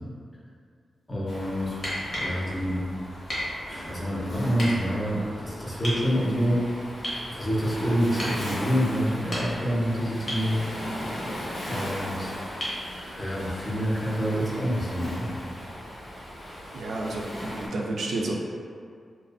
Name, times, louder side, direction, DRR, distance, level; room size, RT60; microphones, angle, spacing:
voice 1, 1.1-2.8 3.6-6.9 7.3-10.6 11.7-15.3, equal, 10° left, -7 dB, 0.5 m, -27 dB
Waves surf, 1.3-17.7, equal, 75° left, 0.9 m, -38 dB
sound 1, 1.8-2.4 3.3-3.5 4.6-4.7 5.8-6.0 7.0-7.3 8.2-8.4 9.1-9.7 10.3-10.5 12.6-12.8 14.7-14.8, equal, 45° left, 0.7 m, -32 dB
voice 2, 16.7-18.3, right 2 dB, 85° right, -2 dB, 0.3 m, -31 dB
2.5 x 2.3 x 2.3 m, 2.2 s
wide cardioid pair, 160°, 0 cm